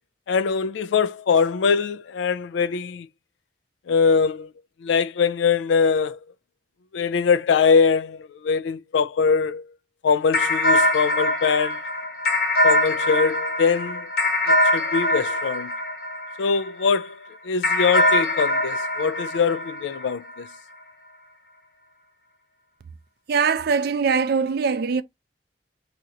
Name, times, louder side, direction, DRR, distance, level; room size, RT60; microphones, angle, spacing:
voice 1, 0.3-3.1 3.9-4.5 4.8-6.2 6.9-9.7 10.0-11.8 12.6-14.1 14.5-15.7 16.4-20.5, left 5 dB, 80° left, 0.3 m, -22 dB
sound 1, 10.3-16.9 17.6-20.4, left 1 dB, 55° left, 0.8 m, -23 dB
voice 2, 23.3-25.0, right 5 dB, 60° right, 0.4 m, -22 dB
2.8 x 2.5 x 4.2 m
head